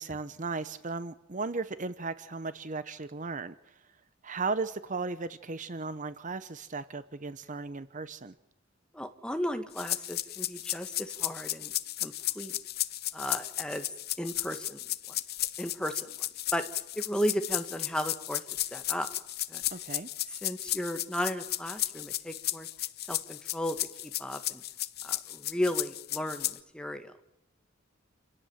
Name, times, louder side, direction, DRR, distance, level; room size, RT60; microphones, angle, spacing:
voice 1, 0.0-3.7 4.2-8.3 19.7-20.1, right 3 dB, 40° right, 13 dB, 0.8 m, -36 dB
voice 2, 8.9-11.7 12.0-12.6 13.1-13.9 14.2-14.8 15.1-15.2 15.6-16.1 16.5-16.6 16.9-18.4 18.7-19.1 19.5-19.6 20.4-22.7 23.1-23.8 24.0-24.6 25.0-27.2, equal, 5° left, 7 dB, 1.7 m, -34 dB
sound 1, 9.8-26.6, left 15 dB, 50° left, 0.8 m, -34 dB
28.5 x 17.5 x 7.3 m, 0.90 s
head